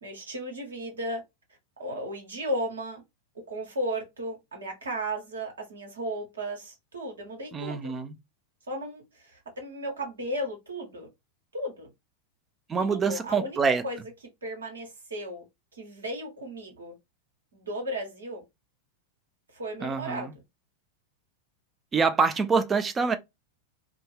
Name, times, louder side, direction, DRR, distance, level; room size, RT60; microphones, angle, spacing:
voice 1, 0.0-1.2 1.8-3.0 3.5-7.9 8.7-11.1 11.5-11.9 12.7-13.6 13.8-14.0 14.4-15.4 15.7-16.9 17.5-18.4 19.5-20.3, equal, 70° right, 1.2 m, -35 dB
voice 2, 7.5-8.1 12.7-13.8 19.8-20.3 21.9-23.2, right 5 dB, 20° right, 0.5 m, -25 dB
2.6 x 2.3 x 3.3 m
figure-of-eight pair, 90°, 0 cm